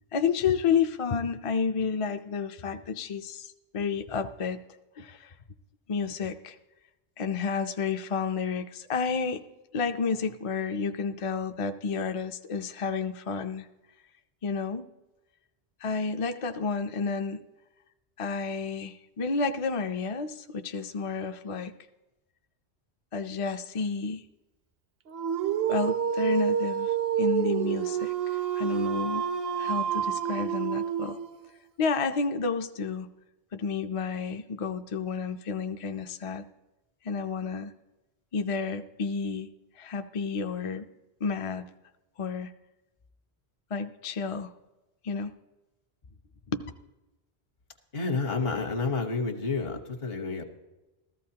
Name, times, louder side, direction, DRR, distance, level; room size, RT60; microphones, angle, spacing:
voice 1, 0.1-4.6 5.0-5.3 5.9-6.6 7.2-9.4 9.7-13.7 14.4-14.9 15.8-17.4 18.2-21.7 23.1-24.2 25.7-29.3 29.6-31.2 31.8-33.1 33.5-36.4 37.0-37.7 38.3-39.5 39.8-40.8 41.2-41.6 42.2-42.5 43.7-44.5 45.0-45.3 46.5-46.6, left 5 dB, 45° left, 7 dB, 0.5 m, -30 dB
Dog, 25.1-31.5, right 8 dB, 65° right, 0.8 m, -28 dB
voice 2, 47.9-50.5, left 4 dB, 65° left, 5 dB, 1.4 m, -30 dB
14.5 x 14.0 x 2.8 m, 1.0 s
omnidirectional pair, 1.1 m